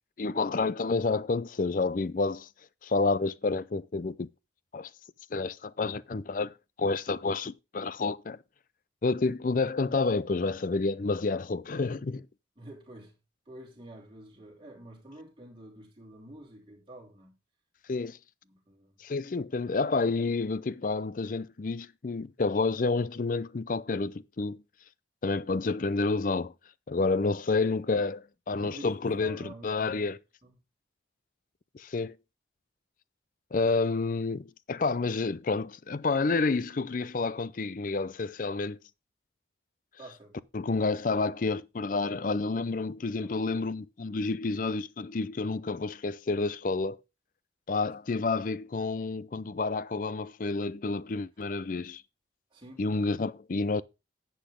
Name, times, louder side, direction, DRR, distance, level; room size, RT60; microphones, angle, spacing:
voice 1, 0.2-2.5 2.8-4.3 4.7-4.9 5.3-8.4 9.0-12.3 17.9-18.2 19.0-24.6 25.2-26.5 26.9-30.2 31.7-32.2 33.5-38.8 40.5-47.0 47.7-52.0 52.8-53.8, left 3 dB, 45° left, 0.4 m, -29 dB
voice 2, 12.6-13.2 13.5-17.4 17.9-18.0 18.4-19.0 28.6-28.9 29.2-30.1 30.4-30.5 40.0-40.4 40.7-41.0 42.0-42.6 43.2-43.7 52.5-52.8, right 1 dB, 25° right, 3.0 m, -49 dB
10.0 x 8.0 x 3.6 m
head